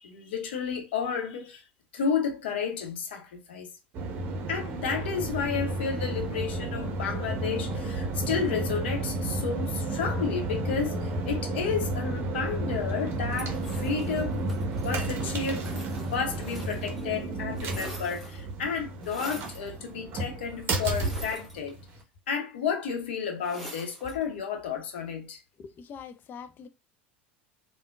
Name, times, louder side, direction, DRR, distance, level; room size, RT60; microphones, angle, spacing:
voice 1, 0.0-1.6 1.9-3.7 4.5-14.4 14.8-21.8 22.3-25.4, left 6 dB, 70° left, 0.8 m, -32 dB
sound 1, 3.9-22.0, right 2 dB, 40° right, 0.8 m, -32 dB
sound 2, 13.3-17.1 17.3-18.5 19.0-19.7 20.8-22.0 23.4-24.2, right 1 dB, ahead, 1.4 m, -45 dB
voice 2, 25.6-26.7, left 6 dB, 35° left, 0.4 m, -43 dB
3.4 x 2.2 x 2.3 m
figure-of-eight pair, 75°, 6 cm